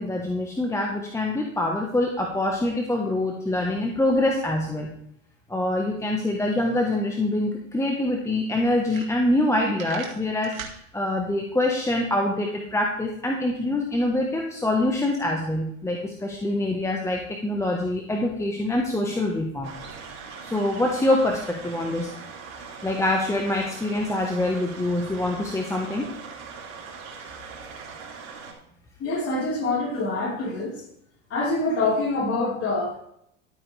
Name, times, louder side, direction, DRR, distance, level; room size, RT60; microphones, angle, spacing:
voice 1, 0.0-4.9 5.5-19.7 20.4-22.1 22.8-26.1, left 1 dB, 5° left, 0 dB, 1.3 m, -25 dB
sound 1, 7.8-7.9 8.4-8.5 8.8-9.5 9.7-10.8, right 8 dB, 85° right, 2.1 m, -38 dB
sound 2, 19.6-28.5, right 5 dB, 40° right, 3.7 m, -41 dB
voice 2, 29.0-30.8 31.3-33.0, left 2 dB, 35° left, -3 dB, 4.4 m, -25 dB
12.0 x 8.9 x 3.4 m, 0.73 s
hypercardioid pair, 100°, 40 cm